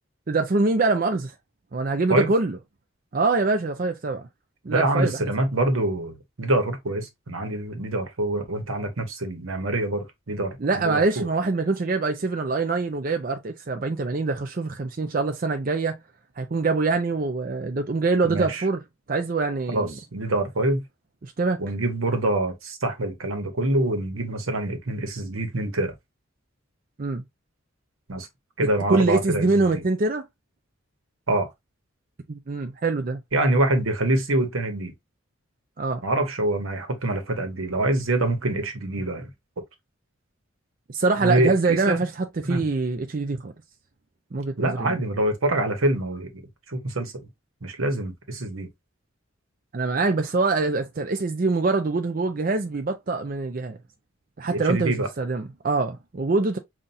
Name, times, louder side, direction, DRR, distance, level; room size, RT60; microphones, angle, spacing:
voice 1, 0.3-1.3 1.7-2.6 3.1-4.3 4.6-5.3 10.6-16.0 16.4-18.8 19.1-19.9 21.2-21.6 27.0-27.2 28.6-30.2 32.3-33.2 35.8-36.0 40.9-42.1 42.4-43.5 44.3-45.0 49.7-53.8 54.4-56.6, right 3 dB, 40° right, 0.5 m, -24 dB
voice 2, 4.7-11.3 18.2-18.7 19.7-20.8 21.6-25.9 28.1-28.3 28.6-29.8 31.3-31.5 33.3-34.9 36.0-39.3 41.2-42.0 42.4-42.6 44.6-46.3 46.7-47.3 47.6-48.7 54.4-55.1, right 1 dB, 85° right, 1.1 m, -25 dB
5.4 x 2.5 x 2.6 m
head